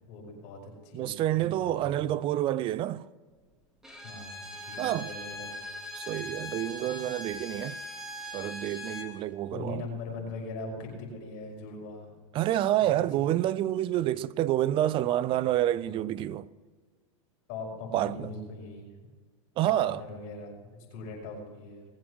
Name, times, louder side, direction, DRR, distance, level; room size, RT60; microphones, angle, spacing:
voice 1, 0.0-2.1 4.0-5.6 9.5-12.2 12.8-13.0 14.0-14.2 15.7-16.3 17.5-18.9 19.6-21.9, left 3 dB, 55° left, 5.6 m, -41 dB
voice 2, 0.9-3.0 4.8-5.1 5.9-7.8 8.3-9.8 12.3-16.5 17.9-18.3 19.6-20.0, right 13 dB, 30° right, 0.4 m, -28 dB
Bowed string instrument, 3.8-9.1, left 1 dB, 5° right, 2.1 m, -40 dB
20.0 x 7.8 x 6.2 m
supercardioid pair, 130°, 17 cm